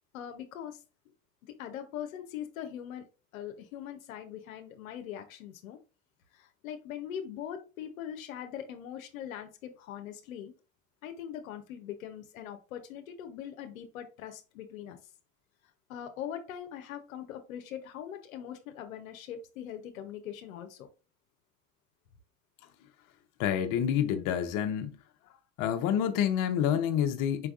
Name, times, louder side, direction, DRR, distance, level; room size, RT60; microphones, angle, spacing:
voice 1, 0.1-0.8 1.6-3.1 3.3-5.8 6.3-10.5 11.0-15.0 15.9-20.9, left 9 dB, 85° left, 0.8 m, -41 dB
voice 2, 23.4-25.0 25.6-27.5, left 9 dB, 50° left, 0.8 m, -28 dB
4.6 x 3.4 x 2.4 m
hypercardioid pair, 90°, 40 cm